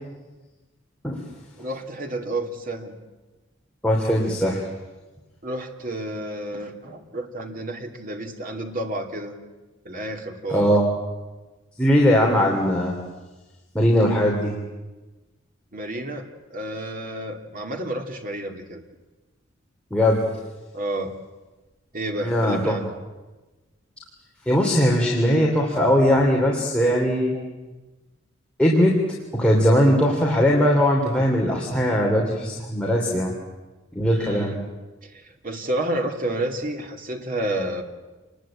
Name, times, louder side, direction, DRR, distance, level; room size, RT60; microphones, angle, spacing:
voice 1, 1.6-2.9 5.4-9.3 9.8-10.7 15.7-18.8 20.7-21.1 21.9-22.9 26.2-26.3 27.3-27.5 34.1-34.6 35.0-37.8, right 1 dB, 45° right, 3 dB, 2.6 m, -30 dB
voice 2, 3.8-4.6 10.5-10.8 11.8-13.0 13.7-14.6 19.9-20.2 22.2-22.8 24.4-27.4 28.6-29.0 29.3-33.3 33.9-34.5, equal, 5° left, -3 dB, 3.1 m, -20 dB
27.5 x 21.0 x 8.9 m, 1.2 s
head